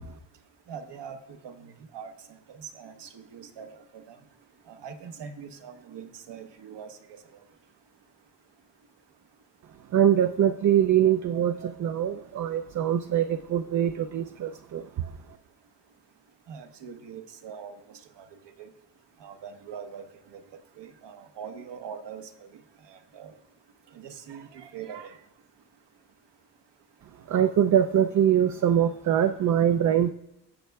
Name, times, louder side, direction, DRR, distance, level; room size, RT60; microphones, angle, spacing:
voice 1, 0.7-1.2 1.4-2.1 2.5-3.7 3.9-4.2 4.7-7.0 16.5-17.8 18.2-18.3 18.6-18.7 19.2-20.0 20.3-20.4 20.8-22.3 22.9-23.3 23.9-25.2, right 7 dB, 75° right, 7 dB, 1.0 m, -42 dB
voice 2, 9.9-11.5 11.8-13.2 13.5-14.8 27.3-30.1, right 9 dB, 45° right, 8 dB, 0.4 m, -23 dB
14.5 x 6.4 x 2.3 m, 0.83 s
cardioid pair, 120°, 43 cm